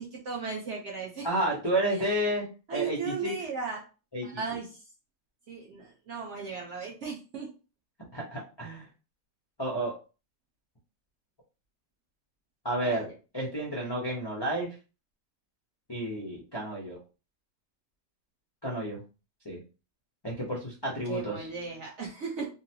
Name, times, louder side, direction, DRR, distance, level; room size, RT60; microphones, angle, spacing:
voice 1, 0.0-1.3 2.7-3.8 4.2-4.7 5.5-7.5 12.8-13.0 21.1-22.5, right 5 dB, 55° right, -2 dB, 0.9 m, -36 dB
voice 2, 1.2-3.3 4.1-4.3 8.1-8.9 9.6-9.9 12.6-14.7 15.9-17.0 18.6-19.0 19.4-19.6 20.2-21.5, right 1 dB, 45° left, -6 dB, 0.3 m, -31 dB
3.8 x 2.0 x 2.8 m, 0.33 s
omnidirectional pair, 1.9 m